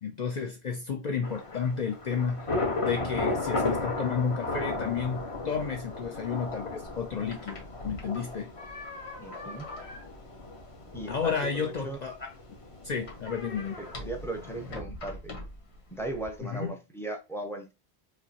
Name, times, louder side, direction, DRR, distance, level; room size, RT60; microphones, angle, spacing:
voice 1, 0.0-2.5 2.8-8.5 11.1-12.3 12.8-13.8 16.4-16.7, left 6 dB, 50° left, 0.6 m, -32 dB
Thunder / Rain, 1.2-14.8, left 3 dB, 30° left, 1.0 m, -35 dB
sound 1, 6.8-16.4, left 2 dB, 75° left, 1.5 m, -44 dB
voice 2, 9.2-9.7 10.9-12.0 13.6-13.7 14.0-15.3 15.9-17.7, right 2 dB, 5° left, 0.6 m, -37 dB
5.0 x 2.2 x 2.8 m
omnidirectional pair, 1.1 m